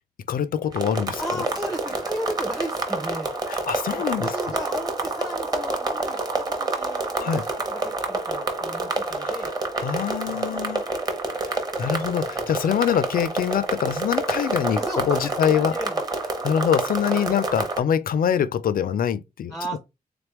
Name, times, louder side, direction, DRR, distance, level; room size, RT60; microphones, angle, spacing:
voice 1, 0.3-1.2 3.5-4.4 7.2-7.5 9.1-10.9 11.4-15.7 16.4-19.5, left 8 dB, 65° left, 0.4 m, -24 dB
sound 1, 0.7-17.8, right 3 dB, 25° right, 0.8 m, -28 dB
voice 2, 1.2-3.4 4.2-9.5 10.3-10.4 14.7-16.1 16.4-16.5 17.1-17.3 19.5-19.8, equal, ahead, 0.5 m, -35 dB
3.7 x 3.4 x 2.9 m
wide cardioid pair, 170°, 16 cm